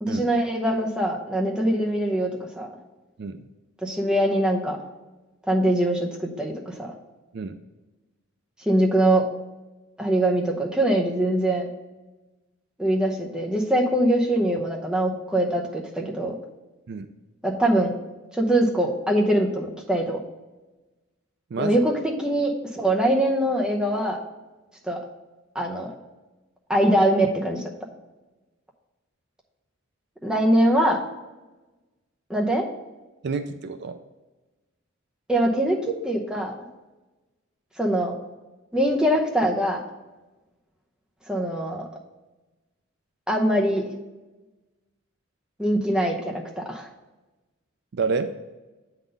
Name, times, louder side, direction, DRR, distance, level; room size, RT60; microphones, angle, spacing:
voice 1, 0.0-2.3 2.6-2.7 3.8-4.8 5.5-6.9 8.7-9.3 10.0-11.7 12.8-16.4 17.4-17.9 18.3-20.2 21.6-24.2 24.8-25.0 25.5-25.9 26.7-27.6 30.2-31.0 32.3-32.7 35.3-36.5 37.8-38.1 38.7-39.8 41.3-41.8 43.3-43.8 45.6-46.9, right 1 dB, 5° right, -1 dB, 0.8 m, -23 dB
voice 2, 33.2-34.0 47.9-48.3, right 4 dB, 55° right, 9 dB, 0.4 m, -28 dB
8.1 x 4.0 x 5.2 m, 1.2 s
head